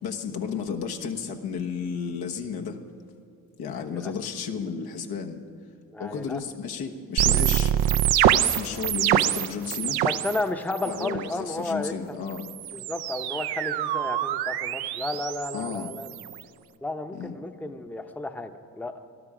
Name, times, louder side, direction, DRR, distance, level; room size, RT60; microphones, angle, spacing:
voice 1, 0.0-2.8 3.6-5.4 6.0-7.7 8.3-10.0 10.8-12.4 15.5-15.9 17.1-17.4, left 6 dB, 80° left, 2 dB, 1.2 m, -33 dB
voice 2, 3.7-4.1 5.9-6.4 10.0-12.2 12.7-16.1 16.8-18.9, left 2 dB, 5° left, 7 dB, 0.7 m, -32 dB
sound 1, 7.2-10.4 10.7-11.3 12.3-16.4, right 11 dB, 85° right, 0.6 m, -25 dB
18.5 x 12.0 x 5.0 m, 2.4 s
cardioid pair, 80°, 37 cm